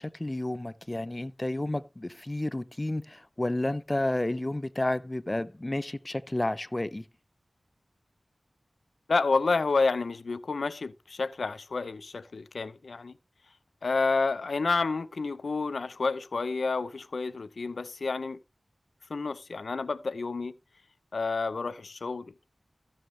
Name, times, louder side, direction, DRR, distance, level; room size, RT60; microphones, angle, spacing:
voice 1, 0.0-7.0, left 1 dB, 25° left, 0.6 m, -31 dB
voice 2, 9.1-13.1 13.8-18.4 19.1-20.5 21.1-22.3, left 4 dB, 85° left, 0.5 m, -29 dB
14.5 x 6.4 x 3.1 m
wide cardioid pair, 50°, 0 cm